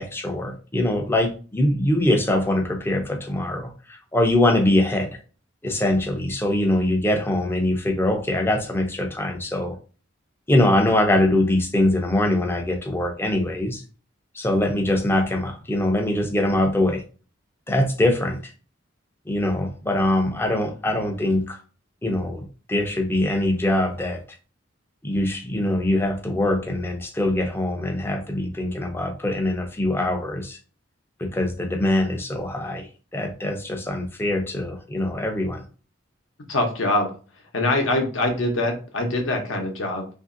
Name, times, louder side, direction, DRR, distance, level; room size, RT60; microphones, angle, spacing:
voice 1, 0.0-5.2 5.6-9.8 10.5-13.8 14.3-17.0 17.7-18.5 19.3-21.6 22.0-24.2 25.0-30.6 31.2-32.9 33.1-35.6, left 1 dB, 10° left, 2 dB, 0.4 m, -23 dB
voice 2, 36.5-37.2 37.5-40.1, left 2 dB, 70° left, 3 dB, 0.7 m, -23 dB
2.8 x 2.5 x 2.5 m, 0.37 s
head